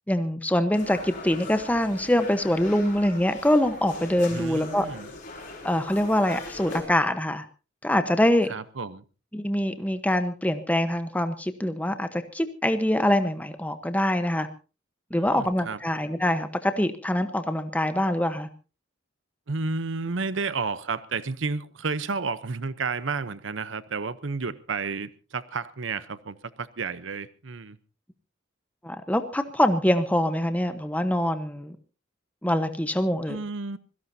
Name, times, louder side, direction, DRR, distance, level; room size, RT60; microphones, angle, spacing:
voice 1, 0.1-4.9 5.6-7.4 7.8-8.5 9.3-14.5 15.1-18.5 28.8-31.8 32.4-33.4, left 1 dB, 10° left, 1.0 m, -24 dB
sound 1, 0.7-6.8, left 3 dB, 45° left, 5.9 m, -40 dB
voice 2, 4.3-5.1 8.5-9.0 15.1-15.8 19.5-27.8 33.3-33.8, right 4 dB, 75° right, 0.8 m, -31 dB
25.5 x 17.0 x 2.7 m
head